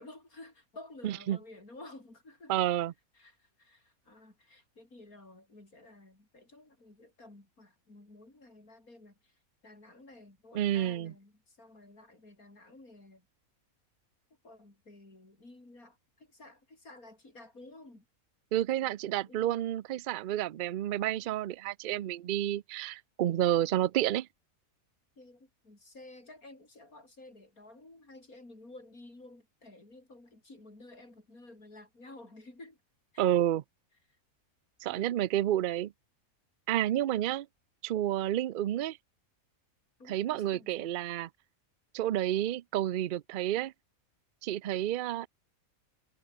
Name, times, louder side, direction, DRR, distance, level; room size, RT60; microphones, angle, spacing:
voice 1, 0.0-2.5 3.1-9.3 9.6-13.2 14.4-18.0 18.8-18.9 19.2-19.6 25.2-32.8 33.1-33.2 34.9-35.1 40.0-40.9, left 2 dB, 85° left, 6.8 m, -53 dB
voice 2, 1.0-1.4 2.5-2.9 10.5-11.1 18.5-24.3 33.2-33.6 34.8-35.9 36.7-37.5 37.8-39.0 40.1-41.3 41.9-43.7 44.4-45.3, right 12 dB, 75° right, 0.4 m, -30 dB
omnidirectional pair, 1.5 m